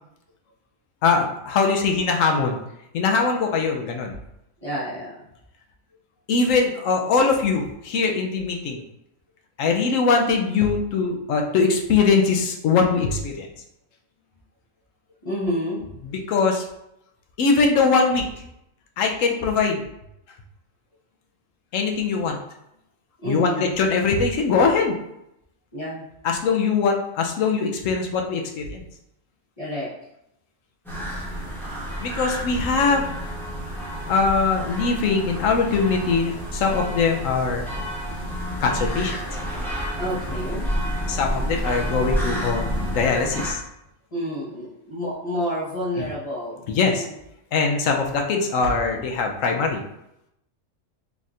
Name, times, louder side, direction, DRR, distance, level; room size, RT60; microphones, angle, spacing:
voice 1, 1.0-2.6 2.9-4.1 6.3-8.8 9.6-13.5 16.0-16.7 17.4-18.3 19.0-19.8 21.7-22.4 23.2-25.0 26.2-28.8 32.0-33.1 34.1-37.7 38.6-39.2 41.1-43.6 46.0-46.1 46.7-47.1 47.5-49.8, left 4 dB, 85° left, 2 dB, 1.0 m, -22 dB
voice 2, 4.6-5.1 15.2-16.0 23.2-23.7 25.7-26.0 29.6-29.9 40.0-41.0 44.1-47.1, equal, 30° left, -7 dB, 1.0 m, -29 dB
sound 1, 30.8-43.5, equal, ahead, 0.8 m, -29 dB
4.1 x 3.5 x 2.4 m, 0.81 s
omnidirectional pair, 1.3 m